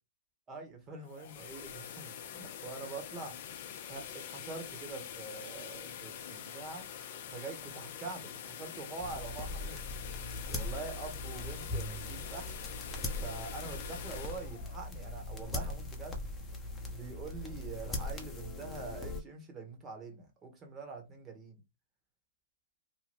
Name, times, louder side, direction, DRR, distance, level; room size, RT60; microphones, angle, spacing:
voice 1, 0.5-3.4 3.9-6.9 7.3-9.8 10.5-12.5 13.1-16.2 16.9-21.6, right 4 dB, 20° right, 1.1 m, -45 dB
sound 1, 0.9-15.8, left 9 dB, 50° left, 0.5 m, -45 dB
sound 2, 9.0-19.2, left 2 dB, 15° left, 0.8 m, -40 dB
2.7 x 2.2 x 3.4 m
hypercardioid pair, 125°, 0 cm